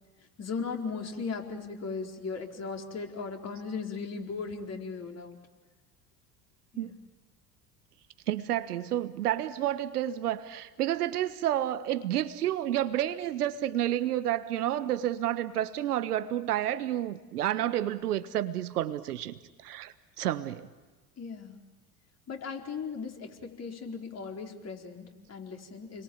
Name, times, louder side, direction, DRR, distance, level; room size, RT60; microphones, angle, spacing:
voice 1, 0.4-5.4 6.7-7.0 21.2-21.6 22.3-26.0, left 5 dB, 35° left, 2 dB, 4.3 m, -37 dB
voice 2, 8.3-20.7, right 12 dB, 75° right, 12 dB, 1.5 m, -30 dB
30.0 x 22.5 x 8.8 m, 1.2 s
hypercardioid pair, 70°, 46 cm